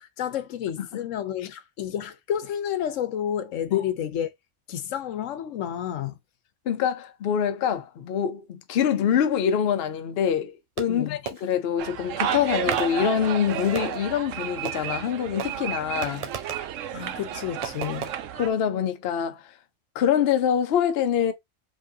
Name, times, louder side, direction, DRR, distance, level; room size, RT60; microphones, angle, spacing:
voice 1, 0.0-4.3 4.7-6.2 10.9-11.2 16.9-18.1, left 10 dB, 85° left, 1.0 m, -30 dB
voice 2, 6.7-16.3 18.4-19.4 19.9-21.3, left 8 dB, 60° left, 0.8 m, -25 dB
Fireworks, 10.8-11.7 12.7-14.1 14.6-15.1 15.4-16.8 17.6-18.1, right 7 dB, 70° right, 0.3 m, -37 dB
sound 1, 11.8-18.5, right 10 dB, 85° right, 1.0 m, -31 dB
5.1 x 2.6 x 2.7 m
omnidirectional pair, 1.3 m